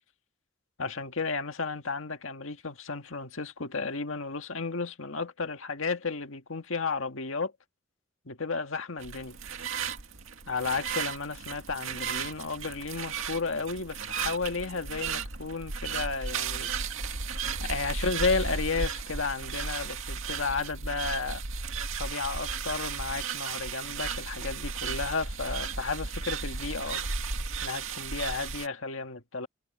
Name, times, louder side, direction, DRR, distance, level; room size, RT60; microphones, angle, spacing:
voice 1, 0.8-7.5 8.3-9.4 10.5-16.7 17.6-21.4 22.0-27.0 27.6-29.5, left 4 dB, 75° left, 1.8 m, -33 dB
sound 1, 9.0-28.7, right 5 dB, 80° right, 2.1 m, -35 dB
head